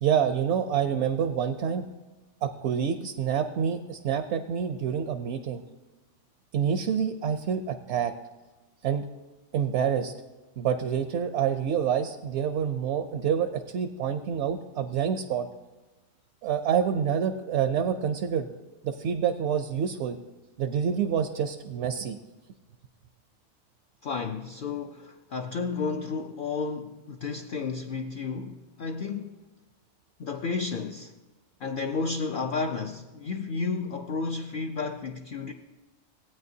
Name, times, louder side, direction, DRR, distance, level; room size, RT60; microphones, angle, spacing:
voice 1, 0.0-1.9 2.4-5.6 6.5-8.1 8.8-9.1 9.5-10.1 10.6-15.5 16.4-18.5 18.8-20.2 20.6-22.2, right 8 dB, 70° right, 0.8 m, -27 dB
voice 2, 24.0-29.4 30.2-31.1 31.6-35.5, left 4 dB, 60° left, 0.6 m, -32 dB
16.0 x 8.8 x 2.7 m
omnidirectional pair, 1.3 m